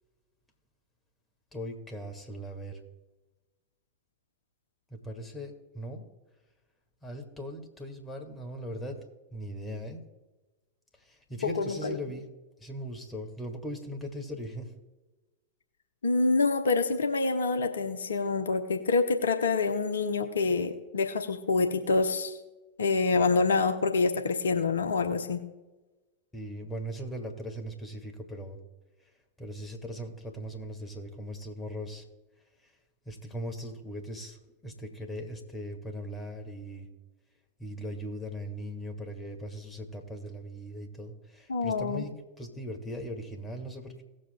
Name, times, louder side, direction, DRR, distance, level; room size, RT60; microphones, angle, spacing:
voice 1, 1.5-2.8 4.9-6.0 7.0-10.0 11.0-12.3 12.6-14.7 26.3-28.6 29.0-29.1 29.4-32.1 32.6-32.7 33.1-36.9 37.6-42.1 42.4-44.0, equal, 10° left, 3 dB, 1.7 m, -39 dB
voice 2, 11.6-12.0 16.0-22.4 22.8-25.4 41.5-42.0, left 4 dB, 70° left, 7 dB, 0.8 m, -26 dB
18.0 x 7.6 x 2.2 m, 1.1 s
figure-of-eight pair, 90°, 0 cm